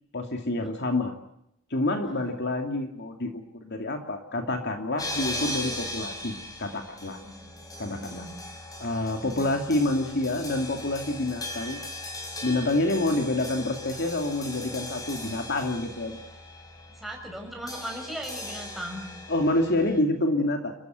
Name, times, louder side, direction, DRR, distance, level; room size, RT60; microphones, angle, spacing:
voice 1, 0.1-1.1 1.7-7.2 7.8-8.2 8.8-11.8 12.4-16.2 19.3-20.7, left 2 dB, 50° left, 4 dB, 2.6 m, -27 dB
sound 1, 5.0-20.0, left 1 dB, 15° left, 5.8 m, -38 dB
voice 2, 7.2-7.6 8.0-8.3 9.2-9.5 17.0-19.0, equal, ahead, 1 dB, 6.2 m, -39 dB
29.5 x 14.5 x 9.3 m, 0.76 s
head